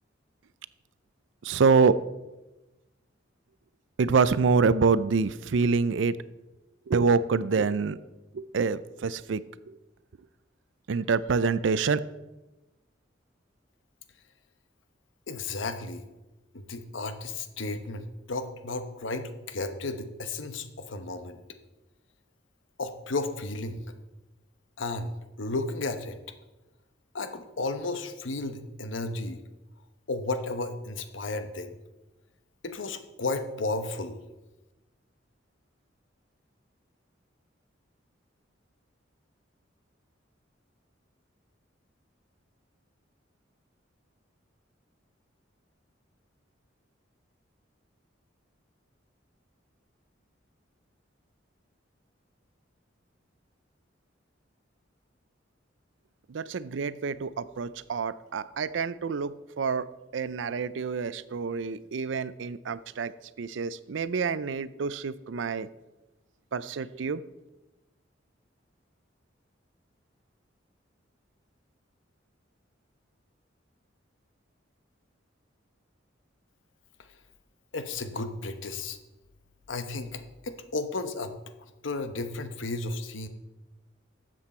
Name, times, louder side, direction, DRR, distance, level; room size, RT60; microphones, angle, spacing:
voice 1, 1.4-2.0 4.0-6.2 6.9-8.0 8.3-9.4 9.7-9.8 10.9-12.0 56.3-59.9 60.1-63.1 63.4-65.7 66.5-67.2, right 5 dB, 70° right, 17 dB, 0.5 m, -26 dB
voice 2, 15.3-16.0 16.5-21.4 22.8-23.8 24.8-25.1 25.4-26.2 27.1-29.4 30.1-31.8 32.6-34.2 77.7-79.0 79.7-81.3 81.8-83.3, left 3 dB, 85° left, 9 dB, 1.0 m, -33 dB
12.5 x 7.7 x 4.3 m, 1.0 s
head